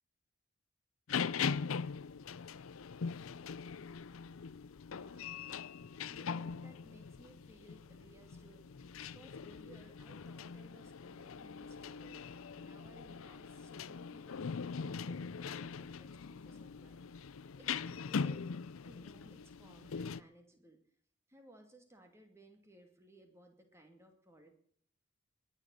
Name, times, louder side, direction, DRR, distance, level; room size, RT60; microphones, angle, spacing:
sound 1, 1.1-20.2, left 6 dB, 80° left, 0.5 m, -41 dB
voice 1, 4.9-5.6 5.9-17.0 17.6-20.8 21.3-24.5, right 1 dB, 15° right, 5 dB, 2.4 m, -61 dB
20.5 x 7.5 x 7.7 m, 0.64 s
head